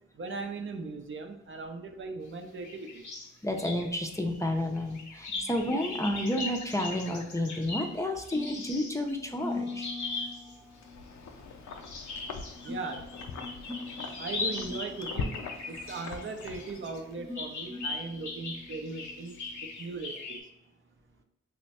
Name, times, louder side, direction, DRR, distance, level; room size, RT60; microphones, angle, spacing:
voice 1, 0.2-3.1 10.4-10.5 12.6-13.1 14.1-20.4, right 4 dB, 45° right, 5 dB, 0.4 m, -39 dB
sound 1, 2.6-3.3 3.6-10.5 11.7-17.0 17.3-20.4, left 3 dB, 85° left, 0.9 m, -39 dB
voice 2, 3.4-9.9, left 1 dB, 10° left, 3 dB, 0.5 m, -31 dB
sound 2, 3.8-19.8, left 3 dB, 15° right, 1.1 m, -45 dB
Wind, 10.6-17.1, left 4 dB, 70° left, 0.5 m, -42 dB
3.1 x 2.2 x 4.1 m, 0.84 s
cardioid pair, 60°, 29 cm